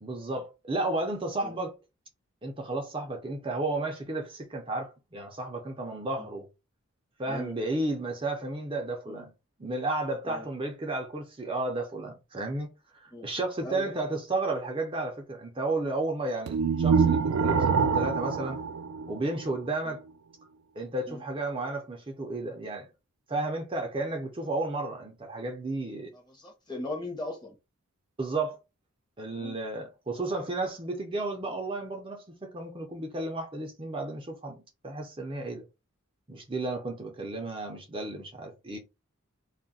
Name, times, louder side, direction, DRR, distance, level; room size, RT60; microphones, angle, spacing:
voice 1, 0.0-1.7 2.4-6.4 7.2-9.3 9.6-18.6 19.1-20.0 20.8-22.9 23.3-26.1 28.2-28.6 29.2-34.6 34.8-35.6 36.3-38.8, right 2 dB, 25° right, 0.5 m, -33 dB
voice 2, 7.2-7.5 9.1-9.2 10.2-10.5 13.1-13.3 13.6-13.9 19.8-20.0 21.1-21.2 26.1-27.5 29.4-29.6, left 2 dB, 20° left, 0.8 m, -39 dB
sound 1, 16.5-19.6, right 6 dB, 85° right, 0.3 m, -25 dB
2.3 x 2.1 x 3.9 m
head